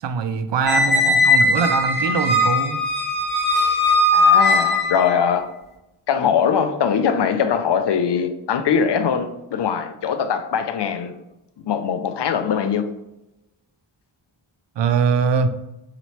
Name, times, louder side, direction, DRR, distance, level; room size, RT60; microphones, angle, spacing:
voice 1, 0.0-2.8 14.8-15.5, right 6 dB, 60° right, 0.5 m, -22 dB
voice 2, 0.6-1.2 4.1-5.5 6.1-11.1 11.7-12.9, left 7 dB, 55° left, 0.5 m, -22 dB
Squeak, 0.7-5.1, left 2 dB, 20° left, 1.0 m, -18 dB
3.9 x 2.9 x 3.2 m
cardioid pair, 45°, 50 cm